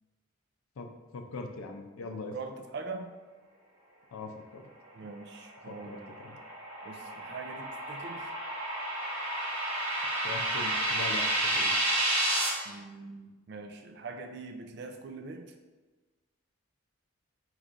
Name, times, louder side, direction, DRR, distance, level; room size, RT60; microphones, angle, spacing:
voice 1, 0.8-2.4 4.1-4.7 5.7-6.4 10.2-11.8, left 3 dB, 90° left, 4 dB, 0.5 m, -41 dB
voice 2, 2.1-3.1 4.9-6.1 6.8-8.3 12.7-15.5, right 3 dB, 50° right, 5 dB, 0.4 m, -43 dB
sound 1, 5.7-12.5, right 1 dB, 70° right, 1.1 m, -31 dB
5.1 x 3.2 x 2.5 m, 1.3 s
head